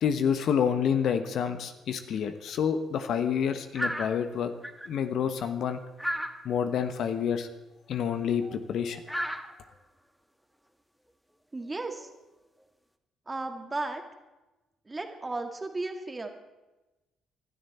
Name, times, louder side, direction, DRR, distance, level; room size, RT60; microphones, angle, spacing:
voice 1, 0.0-4.5 4.9-5.8 6.4-7.5 7.9-9.3, left 7 dB, 60° left, 9 dB, 1.1 m, -28 dB
sound 1, 3.7-4.2 4.6-4.9 6.0-6.5 8.4-8.6 9.1-9.7 12.0-12.1, equal, ahead, 1.5 m, -33 dB
voice 2, 11.5-12.1 13.3-14.0 14.9-16.3, right 2 dB, 25° right, 5 dB, 2.2 m, -34 dB
20.5 x 12.5 x 4.3 m, 1.0 s
hypercardioid pair, 45°, 0 cm